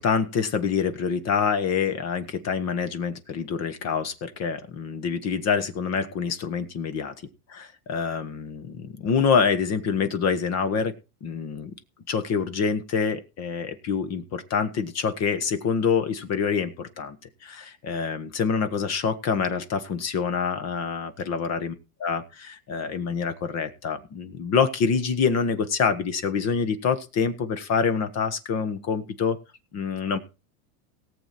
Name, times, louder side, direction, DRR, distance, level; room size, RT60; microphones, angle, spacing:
voice 1, 0.0-7.1 7.5-10.9 11.2-11.7 12.1-17.2 17.4-21.7 22.0-29.4 29.7-30.2, left 6 dB, 35° left, 10 dB, 1.5 m, -26 dB
18.0 x 7.8 x 4.3 m, 0.30 s
supercardioid pair, 145°, 46 cm